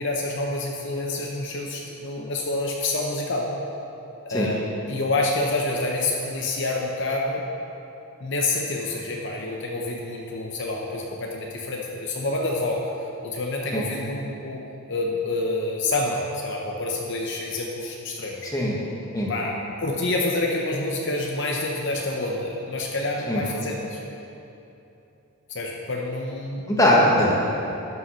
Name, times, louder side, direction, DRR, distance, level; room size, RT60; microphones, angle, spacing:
voice 1, 0.0-3.5 4.2-4.6 4.9-7.4 8.2-12.9 13.2-14.6 14.9-18.5 19.3-24.0 25.5-26.7, left 2 dB, 55° left, -1 dB, 0.8 m, -27 dB
voice 2, 26.7-27.5, left 1 dB, 15° left, -4 dB, 1.3 m, -20 dB
12.0 x 5.5 x 5.6 m, 2.9 s
head